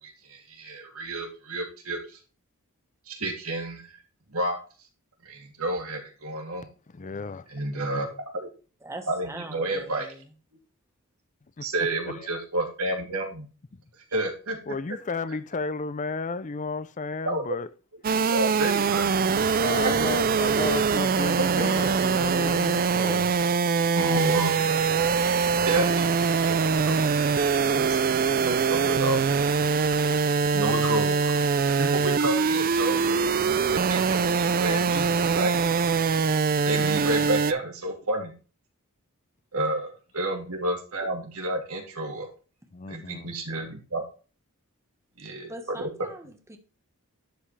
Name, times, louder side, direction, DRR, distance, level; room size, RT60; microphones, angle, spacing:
voice 1, 0.0-2.0 3.1-3.8 4.3-4.6 5.2-6.7 7.5-8.1 8.3-8.5 9.1-10.1 11.6-13.4 14.1-14.6 17.2-17.6 18.1-19.1 21.6-21.7 23.9-24.6 25.6-27.0 27.7-29.2 29.6-30.1 30.5-31.4 31.8-33.2 33.7-35.5 36.6-38.3 39.5-42.3 42.9-44.0 45.2-45.5 45.8-45.9, right 1 dB, 75° right, 3.0 m, -30 dB
voice 2, 6.9-7.5 11.6-11.7 12.1-12.3 14.7-17.7 19.6-23.3 42.7-43.3, left 4 dB, 35° left, 0.5 m, -33 dB
voice 3, 8.8-10.3 45.5-46.6, right 1 dB, 15° right, 1.2 m, -41 dB
sound 1, 18.0-37.5, right 5 dB, 40° right, 0.5 m, -23 dB
11.5 x 5.6 x 3.3 m
head